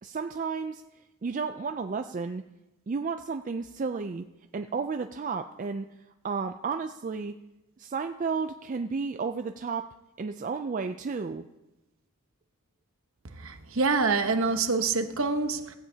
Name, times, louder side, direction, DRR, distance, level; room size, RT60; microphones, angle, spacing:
voice 1, 0.0-0.8 1.2-2.4 2.9-4.2 4.5-5.9 6.2-7.4 7.8-11.4, right 5 dB, 35° right, 0.3 m, -32 dB
voice 2, 13.4-15.8, right 4 dB, 60° right, 1.0 m, -26 dB
16.0 x 15.5 x 2.8 m
head